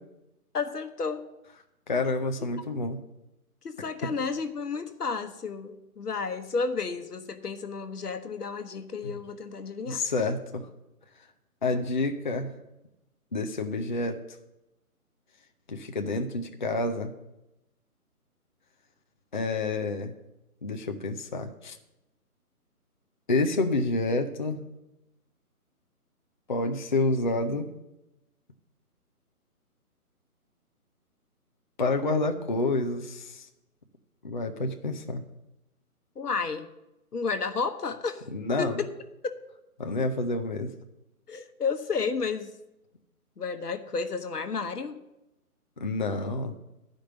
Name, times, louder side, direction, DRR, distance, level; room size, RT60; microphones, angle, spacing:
voice 1, 0.5-1.2 3.6-10.0 36.2-36.7 37.1-38.2 38.6-38.9 39.2-39.3 41.3-42.5 43.4-45.0, left 5 dB, 85° left, 8 dB, 1.1 m, -32 dB
voice 2, 1.9-3.0 4.0-4.1 9.0-9.2 9.9-10.7 11.6-12.5 13.3-14.2 15.7-17.1 19.3-20.1 20.6-21.8 23.3-24.6 26.5-27.7 31.8-33.5 34.2-35.2 38.3-38.8 39.8-40.7 45.8-46.5, left 2 dB, 35° left, 5 dB, 0.5 m, -28 dB
9.9 x 5.1 x 7.4 m, 0.92 s
figure-of-eight pair, 150°, 45 cm